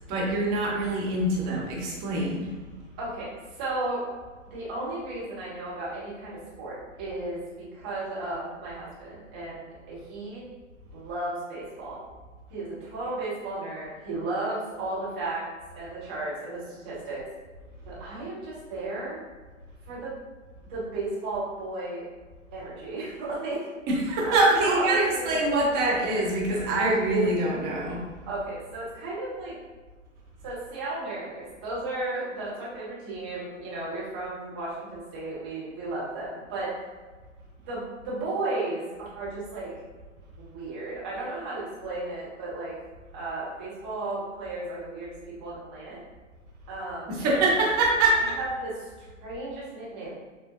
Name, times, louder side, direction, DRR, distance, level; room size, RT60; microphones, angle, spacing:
voice 1, 0.1-2.5 23.9-28.0 47.1-48.3, right 2 dB, 25° right, -3 dB, 1.0 m, -24 dB
voice 2, 3.0-4.0 4.5-10.4 10.9-12.0 12.5-15.4 15.8-17.2 17.9-19.2 19.9-20.2 20.7-22.1 22.5-23.7 24.2-25.3 28.3-29.5 30.4-36.7 37.7-39.7 40.5-42.7 43.1-45.1 45.4-46.0 46.7-47.4 48.4-50.1, right 2 dB, 10° right, -8 dB, 0.3 m, -34 dB
6.4 x 2.2 x 2.6 m, 1.4 s
hypercardioid pair, 125°, 38 cm